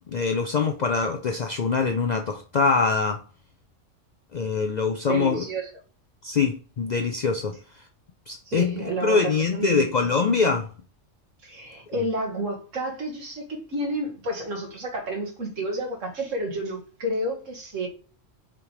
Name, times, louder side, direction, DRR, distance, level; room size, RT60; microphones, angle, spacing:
voice 1, 0.1-3.2 4.3-5.4 6.2-7.6 8.3-8.8 9.0-10.7, left 5 dB, 65° left, 0.4 m, -24 dB
voice 2, 5.1-5.7 8.5-9.8 11.4-17.9, right 1 dB, 90° right, 1.8 m, -30 dB
5.8 x 3.2 x 5.1 m
omnidirectional pair, 1.3 m